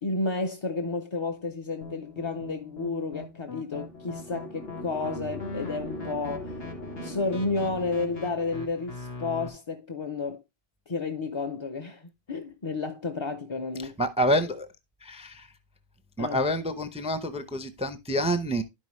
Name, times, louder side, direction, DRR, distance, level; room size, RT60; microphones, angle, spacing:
voice 1, 0.0-6.6 7.0-10.4 10.9-13.9 16.2-16.4, left 3 dB, 35° left, 0.6 m, -31 dB
sound 1, 1.8-9.5, left 3 dB, 80° left, 1.8 m, -42 dB
sound 2, 3.8-8.8, left 1 dB, 65° left, 3.5 m, -40 dB
voice 2, 14.0-14.7 15.0-15.5 16.2-18.6, equal, 10° right, 0.5 m, -27 dB
11.5 x 5.4 x 3.1 m
omnidirectional pair, 1.0 m